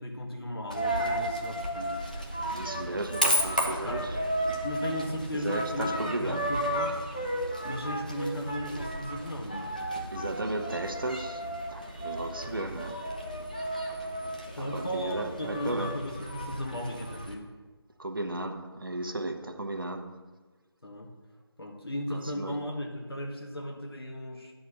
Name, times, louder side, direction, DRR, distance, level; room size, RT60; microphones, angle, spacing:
voice 1, 0.0-1.9 3.8-4.1 4.6-7.0 7.6-9.7 14.6-17.4 20.8-21.1 21.6-24.5, equal, 65° left, 1.9 m, -36 dB
Coin (dropping), 0.7-17.3, right 1 dB, 20° left, 0.5 m, -33 dB
voice 2, 2.5-4.2 5.3-6.6 10.1-13.1 14.6-16.0 18.0-20.3 22.1-22.7, right 2 dB, 55° right, 0.9 m, -35 dB
10.5 x 4.2 x 6.6 m
figure-of-eight pair, 180°, 14 cm